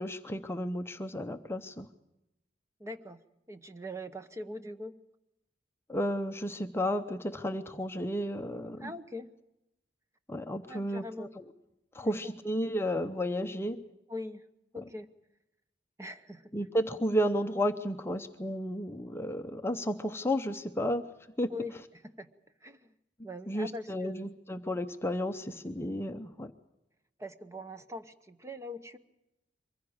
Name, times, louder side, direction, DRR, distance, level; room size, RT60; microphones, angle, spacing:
voice 1, 0.0-1.9 5.9-8.9 10.3-11.4 11.9-13.8 16.5-21.0 21.4-21.5 23.5-26.5, equal, 15° left, 7 dB, 0.7 m, -32 dB
voice 2, 2.8-5.0 8.8-9.3 10.7-11.3 12.0-12.3 14.1-14.5 14.7-15.1 16.0-16.6 21.5-22.3 22.6-22.9 23.2-24.2 27.2-29.0, left 1 dB, 15° right, 9 dB, 0.9 m, -42 dB
23.5 x 15.5 x 8.7 m, 0.89 s
head